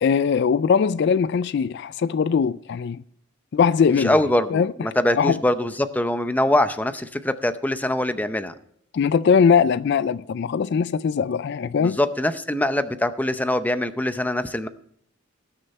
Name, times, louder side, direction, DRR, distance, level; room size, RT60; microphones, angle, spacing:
voice 1, 0.0-3.0 3.5-4.2 4.5-4.7 5.1-5.4 8.9-12.0, left 6 dB, 55° left, 0.3 m, -20 dB
voice 2, 3.9-8.5 11.8-14.7, left 1 dB, 10° left, 0.6 m, -23 dB
19.0 x 6.6 x 4.2 m
head